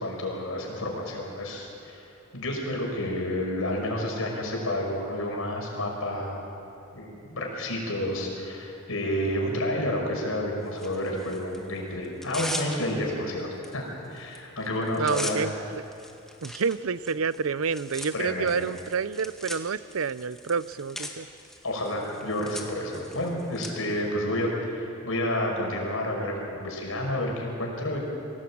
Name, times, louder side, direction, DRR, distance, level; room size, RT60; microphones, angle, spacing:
voice 1, 0.0-2.0 2.3-6.4 6.9-15.5 18.1-18.6 21.6-28.0, left 1 dB, 85° left, 0 dB, 5.6 m, -30 dB
Tearing, 10.8-11.6 12.0-13.1 13.6-13.8 14.0-14.4 14.6-23.7, left 1 dB, ahead, 1.8 m, -40 dB
voice 2, 15.0-15.8 16.4-21.3, right 5 dB, 80° right, 16 dB, 0.6 m, -29 dB
24.0 x 17.5 x 8.7 m, 2.8 s
head